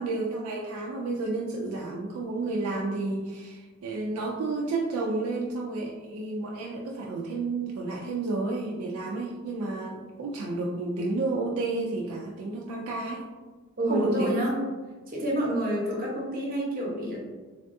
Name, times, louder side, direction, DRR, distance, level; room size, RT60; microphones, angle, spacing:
voice 1, 0.0-13.2 13.9-14.4, right 3 dB, 85° right, -2 dB, 0.3 m, -31 dB
voice 2, 13.8-14.6 15.1-17.2, right 1 dB, 40° right, -4 dB, 0.8 m, -28 dB
3.3 x 2.2 x 2.6 m, 1.4 s
head